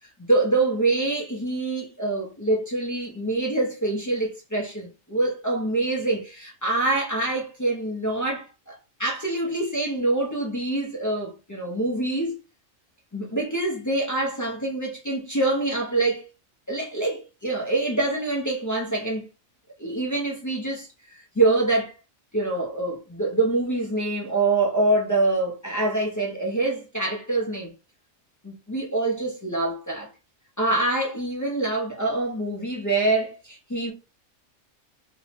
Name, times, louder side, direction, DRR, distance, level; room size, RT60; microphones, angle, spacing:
voice 1, 0.3-12.4 13.1-16.2 16.7-19.3 19.8-21.9 22.3-27.7 28.4-30.1 30.6-33.9, right 2 dB, 30° left, 0.3 m, -25 dB
2.7 x 2.0 x 2.8 m
omnidirectional pair, 1.3 m